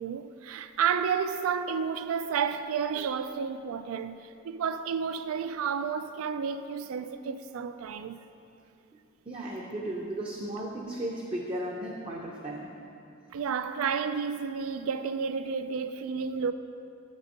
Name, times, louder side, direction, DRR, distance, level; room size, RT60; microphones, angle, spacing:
voice 1, 0.0-8.2 13.3-16.5, right 6 dB, 85° right, 0.3 m, -31 dB
voice 2, 9.3-12.7, right 1 dB, 25° right, 0.5 m, -35 dB
5.3 x 5.2 x 6.5 m
head